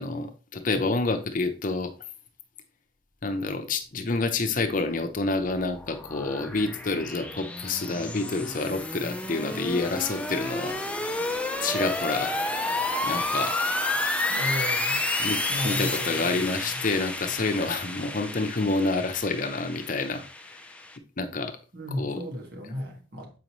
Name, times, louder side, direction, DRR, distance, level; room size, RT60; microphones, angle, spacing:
voice 1, 0.0-1.9 3.2-10.8 11.6-12.5 13.0-13.7 15.2-20.2 21.2-21.6 22.0-22.2, left 3 dB, 45° left, 0.7 m, -28 dB
sound 1, 5.0-21.0, left 2 dB, 5° left, 0.5 m, -31 dB
voice 2, 14.3-15.0 15.5-16.5 21.7-23.4, equal, 55° right, 1.9 m, -34 dB
7.6 x 5.3 x 3.0 m
head